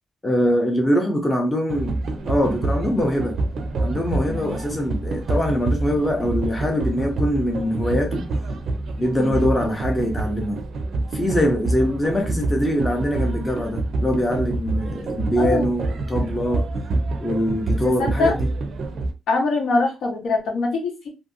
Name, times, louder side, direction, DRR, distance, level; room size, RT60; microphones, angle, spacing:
voice 1, 0.2-3.4 3.8-8.3 9.0-10.6 11.1-16.7 17.2-18.5, equal, 10° left, 0.5 m, -23 dB
sound 1, 1.7-19.1, right 2 dB, 50° right, 0.4 m, -27 dB
voice 2, 15.4-15.7 17.8-18.3 19.3-21.1, left 3 dB, 80° left, 1.0 m, -23 dB
2.7 x 2.6 x 2.5 m
wide cardioid pair, 175°, 0 cm